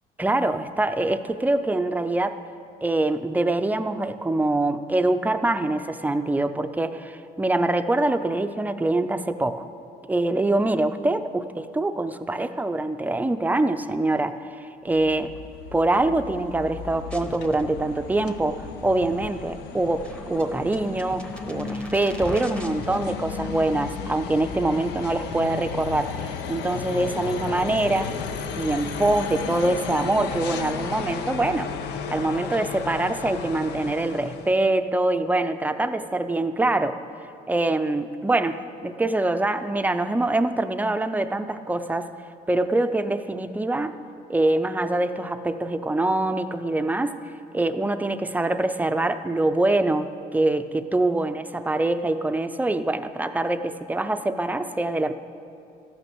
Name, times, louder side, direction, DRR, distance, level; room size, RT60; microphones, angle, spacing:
voice 1, 0.2-2.4 2.8-9.7 10.1-15.3 15.7-28.1 28.6-31.7 32.1-37.0 37.5-42.1 42.5-44.0 44.3-47.2 47.5-55.1, right 2 dB, 10° right, 9 dB, 0.5 m, -24 dB
sound 1, 14.9-34.7, left 6 dB, 80° left, 0.8 m, -34 dB
sound 2, 17.1-25.1, equal, 5° left, 0.9 m, -42 dB
13.5 x 9.1 x 6.1 m, 2.5 s
cardioid pair, 110°, 17 cm